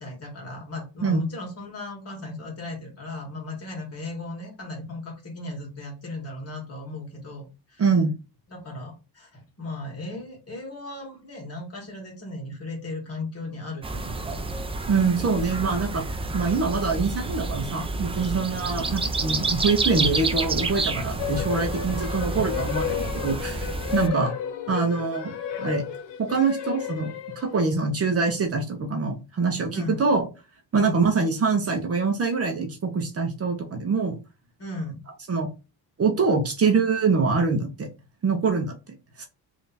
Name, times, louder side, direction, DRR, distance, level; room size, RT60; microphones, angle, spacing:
voice 1, 0.0-7.8 8.5-14.4 23.9-24.2 29.7-30.0 30.8-31.1 34.6-35.0, left 2 dB, 35° left, 0 dB, 2.0 m, -36 dB
voice 2, 7.8-8.1 14.9-16.0 16.3-24.3 24.7-25.3 25.6-25.8 26.2-30.3 30.7-34.2 35.3-35.5 36.0-37.9 38.2-39.2, right 4 dB, 35° right, 3 dB, 1.0 m, -24 dB
sound 1, 13.8-24.1, right 3 dB, 15° right, 0.5 m, -29 dB
sound 2, 21.2-27.7, left 9 dB, 75° left, 1.2 m, -32 dB
3.5 x 3.0 x 4.0 m, 0.29 s
cardioid pair, 125°, 42 cm